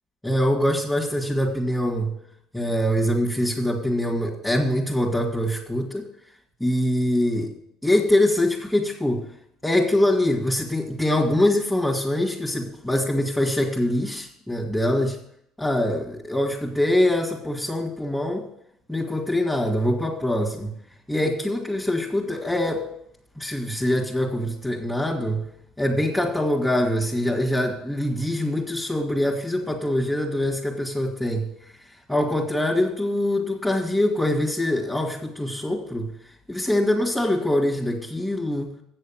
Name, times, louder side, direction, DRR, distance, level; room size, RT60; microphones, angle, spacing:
voice 1, 0.2-2.1 2.5-6.1 6.6-7.5 7.8-9.2 9.6-15.2 15.6-18.5 18.9-20.7 21.1-22.9 23.4-25.4 25.8-31.5 32.1-36.1 36.5-38.7, left 1 dB, 10° left, -4 dB, 2.0 m, -23 dB
8.4 x 6.5 x 7.3 m, 0.72 s
supercardioid pair, 80°, 0 cm